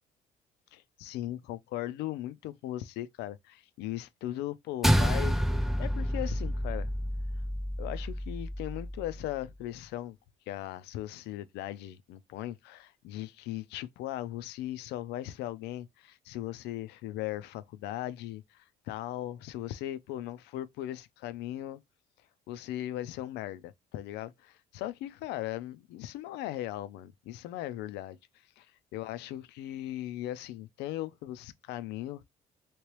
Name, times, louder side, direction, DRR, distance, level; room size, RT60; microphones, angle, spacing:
voice 1, 0.7-5.4 5.8-6.9 7.8-10.2 10.5-21.8 22.5-28.2 28.6-28.7 28.9-32.2, left 14 dB, 85° left, 0.4 m, -38 dB
sound 1, 4.8-9.4, equal, ahead, 0.3 m, -29 dB
3.1 x 2.9 x 3.0 m
cardioid pair, 110°, 17 cm